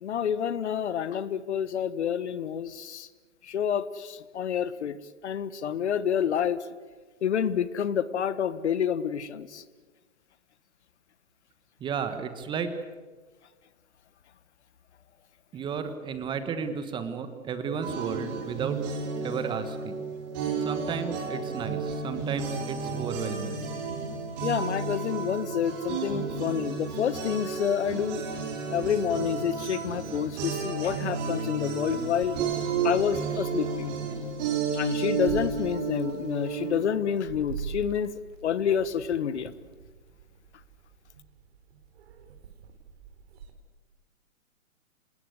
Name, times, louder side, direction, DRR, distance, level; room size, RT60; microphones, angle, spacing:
voice 1, 0.0-3.1 3.4-5.0 5.2-6.6 7.2-9.6 24.4-28.2 28.7-32.4 32.8-34.0 34.7-39.5, left 8 dB, 55° left, 16 dB, 1.3 m, -28 dB
voice 2, 11.8-12.7 15.5-18.8 19.2-20.0 20.6-23.6, right 6 dB, 10° right, 10 dB, 1.3 m, -33 dB
sound 1, 17.8-36.9, right 5 dB, 35° right, 5.2 m, -32 dB
Meow, 32.2-43.5, right 6 dB, 50° right, 3.8 m, -44 dB
26.5 x 20.0 x 8.2 m, 1.4 s
hypercardioid pair, 145°, 40 cm